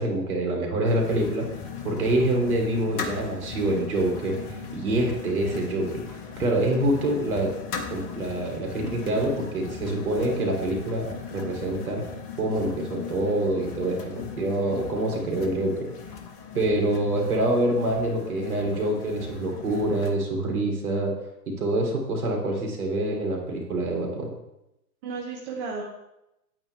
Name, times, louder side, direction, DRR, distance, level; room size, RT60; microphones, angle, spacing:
voice 1, 0.0-1.5 1.8-4.4 4.7-5.9 6.4-7.5 7.9-12.1 12.4-15.7 16.5-21.1 21.5-24.3, right 1 dB, 60° right, 1 dB, 3.0 m, -26 dB
sound 1, 0.9-20.1, left 6 dB, 25° left, 0.9 m, -38 dB
voice 2, 8.8-9.4 25.0-25.8, right 4 dB, 25° right, 0 dB, 1.1 m, -34 dB
9.0 x 8.6 x 3.3 m, 0.87 s
figure-of-eight pair, 120°, 48 cm